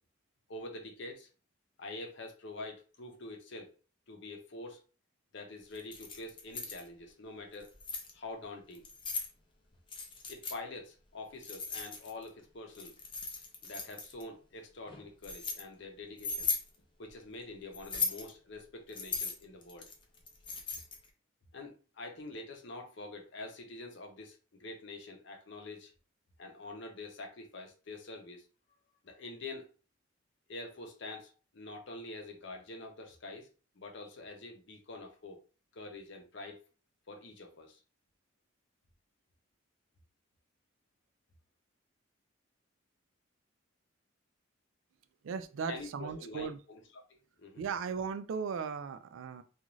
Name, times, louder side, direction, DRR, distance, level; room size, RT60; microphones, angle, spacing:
voice 1, 0.5-1.3 1.8-3.8 4.1-4.8 5.3-7.7 8.1-8.8 10.3-12.9 13.6-16.5 17.0-19.9 21.5-25.9 26.4-28.5 29.0-29.7 30.5-33.5 33.8-35.4 35.7-36.6 37.1-37.8 45.7-46.8 47.4-47.6, left 2 dB, 60° left, 2 dB, 0.7 m, -46 dB
Keys jangling, 5.7-6.8 7.5-8.1 8.7-9.3 9.9-10.6 11.4-12.3 12.7-14.2 14.9-15.6 16.2-16.7 17.7-18.3 18.9-21.1, left 4 dB, 25° left, 0.5 m, -37 dB
voice 2, 45.2-46.6 47.6-49.4, right 6 dB, 75° right, 10 dB, 0.3 m, -37 dB
2.5 x 2.4 x 3.0 m, 0.35 s
head